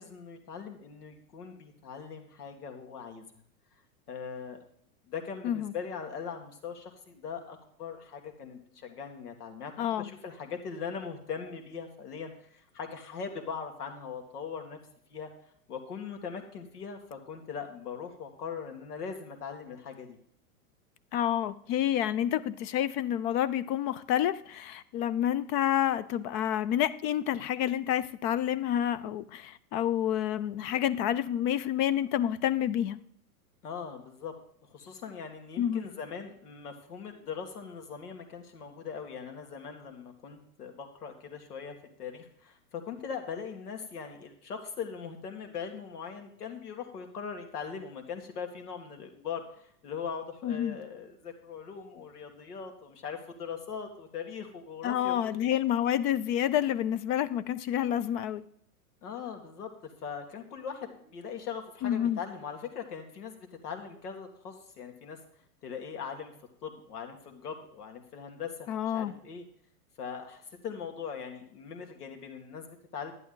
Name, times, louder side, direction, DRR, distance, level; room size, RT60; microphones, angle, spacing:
voice 1, 0.0-3.2 4.1-4.6 5.1-14.8 15.1-15.3 15.7-20.2 33.6-34.4 34.6-55.3 59.0-65.2 65.6-66.3 66.6-69.4 70.0-73.1, left 6 dB, 85° left, 2.3 m, -40 dB
voice 2, 9.8-10.1 21.1-33.0 35.6-35.9 50.4-50.8 54.8-58.4 61.8-62.2 68.7-69.1, left 11 dB, 35° left, 0.5 m, -29 dB
11.0 x 10.5 x 3.9 m
hypercardioid pair, 120°, 45 cm